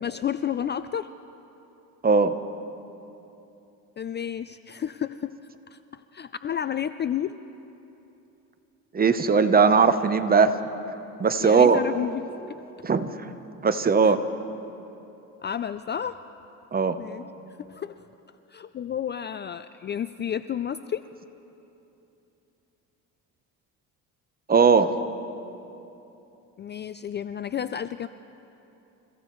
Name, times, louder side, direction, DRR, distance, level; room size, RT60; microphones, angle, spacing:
voice 1, 0.0-1.1 4.0-5.3 5.7-7.4 11.4-12.6 14.0-14.1 15.4-16.2 17.0-17.2 17.6-17.9 18.5-21.0 26.6-28.1, left 9 dB, 30° left, 12 dB, 0.4 m, -31 dB
voice 2, 2.0-2.3 8.9-10.6 11.2-11.8 12.8-13.3 13.6-14.2 16.7-17.0 24.5-24.9, right 5 dB, 25° right, 10 dB, 0.8 m, -19 dB
29.0 x 16.0 x 3.1 m, 2.9 s
cardioid pair, 90°, 35 cm